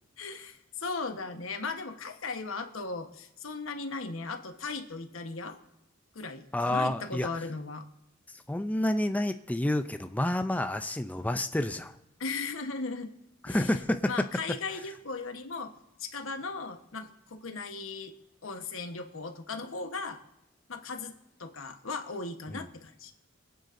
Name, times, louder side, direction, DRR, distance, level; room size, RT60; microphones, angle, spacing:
voice 1, 0.2-5.6 6.1-7.9 12.2-13.1 13.5-13.8 14.1-18.1 18.4-20.2 20.7-23.1, left 4 dB, 90° left, 6 dB, 1.2 m, -37 dB
voice 2, 6.5-7.3 8.5-11.9 13.4-14.1 22.5-22.6, left 1 dB, 10° left, 8 dB, 0.4 m, -29 dB
26.5 x 9.2 x 2.6 m, 0.88 s
head